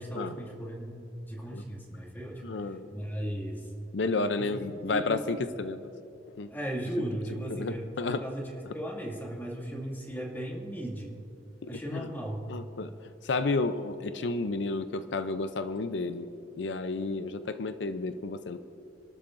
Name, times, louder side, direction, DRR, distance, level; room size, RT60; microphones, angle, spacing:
voice 1, 0.0-3.7 4.4-5.1 5.4-5.6 6.5-11.2 11.7-12.4, right 1 dB, 10° left, -2 dB, 2.2 m, -37 dB
voice 2, 2.4-2.9 3.9-5.9 6.4-6.5 7.5-8.3 11.6-12.1 12.5-12.9 13.2-16.3 16.6-18.6, left 3 dB, 85° left, 10 dB, 0.6 m, -31 dB
29.5 x 12.5 x 2.6 m, 2.7 s
head